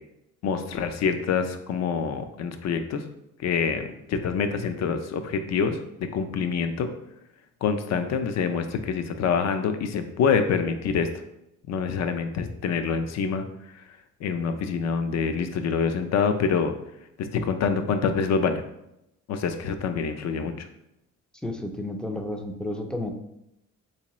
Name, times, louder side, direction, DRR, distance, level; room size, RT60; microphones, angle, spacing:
voice 1, 0.4-3.0 3.4-5.8 6.1-6.9 7.6-11.1 11.7-13.5 14.2-16.7 17.2-18.6 19.3-20.7, left 6 dB, 60° left, 8 dB, 0.5 m, -26 dB
voice 2, 21.4-23.1, left 1 dB, 5° left, 4 dB, 0.4 m, -31 dB
3.6 x 2.8 x 3.0 m, 0.83 s
cardioid pair, 90°, 30 cm